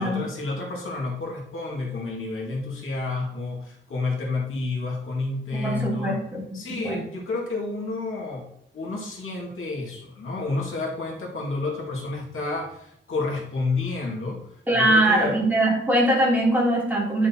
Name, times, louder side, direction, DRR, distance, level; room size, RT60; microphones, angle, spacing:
voice 1, 0.0-6.2 6.5-8.5 8.7-15.4, left 3 dB, 90° left, -3 dB, 2.3 m, -30 dB
voice 2, 5.5-7.0 14.7-17.3, right 1 dB, 10° right, -6 dB, 3.3 m, -22 dB
10.5 x 6.3 x 2.9 m, 0.73 s
wide cardioid pair, 135°, 21 cm